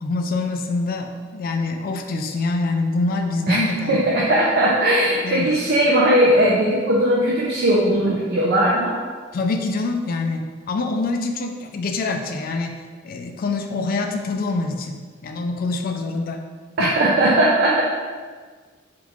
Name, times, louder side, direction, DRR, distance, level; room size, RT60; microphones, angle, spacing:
voice 1, 0.0-4.0 5.2-5.5 9.3-16.5 16.8-16.9, left 3 dB, 45° left, 5 dB, 0.3 m, -25 dB
voice 2, 3.9-9.0 16.8-17.8, right 1 dB, 55° right, -4 dB, 0.4 m, -18 dB
3.6 x 2.4 x 3.0 m, 1.5 s
head